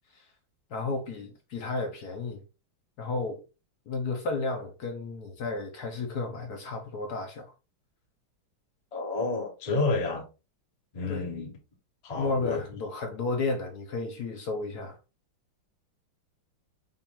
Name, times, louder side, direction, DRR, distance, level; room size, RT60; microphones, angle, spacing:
voice 1, 0.7-2.4 3.0-3.4 3.9-7.5 11.1-11.3 12.2-15.0, left 3 dB, 60° left, 1.2 m, -32 dB
voice 2, 8.9-10.2 10.9-11.5 12.0-12.6, left 3 dB, 30° left, 0.8 m, -29 dB
5.7 x 2.6 x 3.6 m
omnidirectional pair, 2.2 m